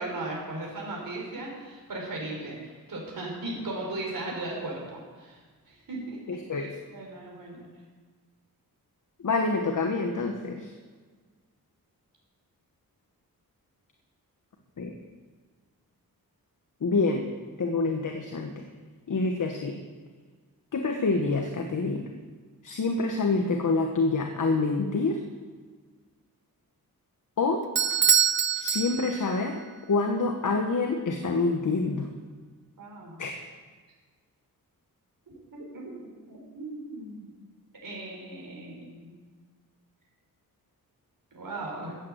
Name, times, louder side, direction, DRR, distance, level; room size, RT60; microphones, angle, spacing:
voice 1, 0.0-5.4 5.7-6.2 6.6-7.7 32.8-33.2 35.5-35.8 36.3-37.3 37.8-39.2 41.3-42.0, right 2 dB, 65° right, -1 dB, 5.4 m, -37 dB
voice 2, 6.3-6.7 9.2-10.7 14.8-14.9 16.8-17.2 17.6-18.5 19.1-19.8 20.7-22.1 22.6-25.2 27.4-27.6 28.6-29.6 29.9-32.1 33.2-33.3, left 3 dB, 55° left, 3 dB, 1.4 m, -27 dB
Bell / Doorbell, 27.8-29.5, right 8 dB, 35° right, 0.4 m, -24 dB
14.5 x 9.0 x 8.0 m, 1.4 s
wide cardioid pair, 130°, 36 cm